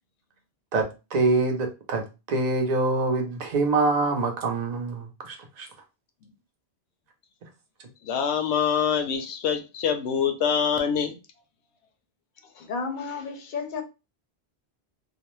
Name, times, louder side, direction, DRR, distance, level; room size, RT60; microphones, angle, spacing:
voice 1, 0.7-2.0 2.3-5.7, right 3 dB, 45° right, 0.7 m, -25 dB
voice 2, 8.0-11.2, left 7 dB, 90° left, 0.9 m, -25 dB
voice 3, 12.4-13.8, left 4 dB, 55° left, 0.6 m, -33 dB
2.4 x 2.0 x 3.0 m
omnidirectional pair, 1.1 m